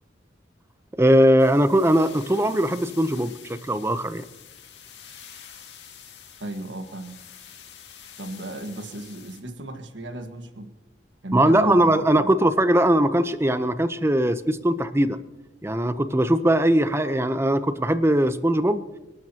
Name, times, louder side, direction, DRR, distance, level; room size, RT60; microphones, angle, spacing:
voice 1, 1.0-4.2 11.3-15.2 15.6-18.8, right 1 dB, 15° right, 12 dB, 0.7 m, -20 dB
sound 1, 1.4-9.4, left 8 dB, 75° left, 2.2 m, -47 dB
voice 2, 6.4-7.2 8.2-10.7 11.2-12.3, right 1 dB, 85° right, 7 dB, 1.6 m, -35 dB
29.0 x 12.5 x 2.9 m, 1.1 s
head